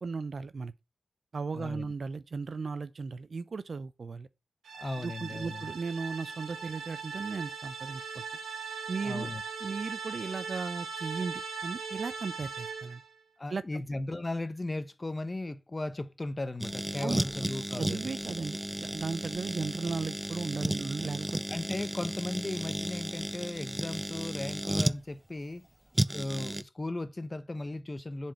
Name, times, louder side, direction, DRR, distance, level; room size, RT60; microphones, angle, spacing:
voice 1, 0.0-0.7 1.3-4.3 5.0-8.2 8.9-9.3 9.6-13.0 13.5-13.8 17.0-17.2 17.8-21.4, right 4 dB, 60° right, 0.7 m, -36 dB
voice 2, 1.5-1.9 4.7-5.7 9.0-9.4 13.4-18.0 21.5-25.6 26.1-28.3, left 2 dB, 30° left, 1.0 m, -36 dB
sound 1, 4.6-13.1, right 5 dB, 90° right, 1.3 m, -39 dB
sound 2, 16.6-25.0 25.9-26.6, right 1 dB, 10° right, 0.4 m, -34 dB
7.5 x 4.5 x 7.0 m
cardioid pair, 50°, 0 cm